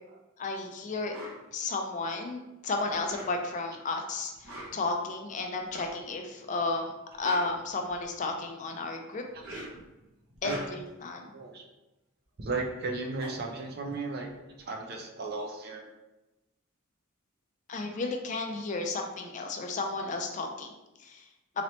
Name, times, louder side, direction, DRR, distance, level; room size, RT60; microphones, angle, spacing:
voice 1, 0.4-1.2 1.5-6.9 7.2-9.2 9.5-9.7 10.4-11.3 17.7-20.7 21.0-21.3, left 3 dB, 35° left, 3 dB, 0.4 m, -33 dB
sound 1, 1.1-1.4 2.9-3.6 4.3-4.9 5.7-6.0 7.0-8.2 9.2-9.9 10.3-11.0 12.5-12.6 12.8-14.5, right 1 dB, 70° right, 1.0 m, -44 dB
voice 2, 11.3-11.6 12.4-14.3 14.7-15.9, right 3 dB, 45° right, 2 dB, 0.5 m, -35 dB
3.9 x 2.9 x 3.1 m, 1.0 s
head